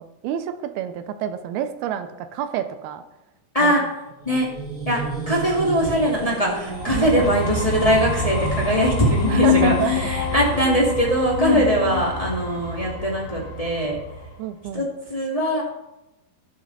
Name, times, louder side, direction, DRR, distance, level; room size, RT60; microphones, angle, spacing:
voice 1, 0.0-3.0 3.6-3.7 6.9-7.1 9.3-10.1 11.5-11.7 14.4-14.9, right 10 dB, 80° right, 9 dB, 2.6 m, -28 dB
sound 1, 4.1-11.1, right 4 dB, 35° right, 1.5 m, -34 dB
voice 2, 4.8-14.0 14.7-15.6, equal, 15° left, -3 dB, 1.3 m, -21 dB
sound 2, 6.7-14.3, left 1 dB, 55° left, 2.2 m, -29 dB
sound 3, 9.1-12.5, left 19 dB, 85° left, 2.6 m, -25 dB
18.0 x 6.3 x 4.1 m, 0.94 s
omnidirectional pair, 4.5 m